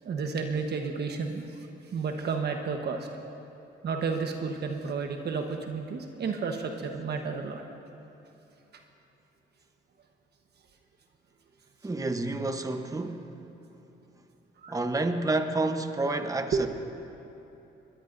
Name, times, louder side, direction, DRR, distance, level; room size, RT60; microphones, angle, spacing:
voice 1, 0.0-1.7 1.9-3.1 3.8-7.6 14.6-14.8 16.5-16.7, right 5 dB, 55° right, 1.2 m, -31 dB
voice 2, 11.8-13.4 14.7-16.7, right 2 dB, 15° right, 1.0 m, -29 dB
22.0 x 20.5 x 2.7 m
cardioid pair, 90°, 20 cm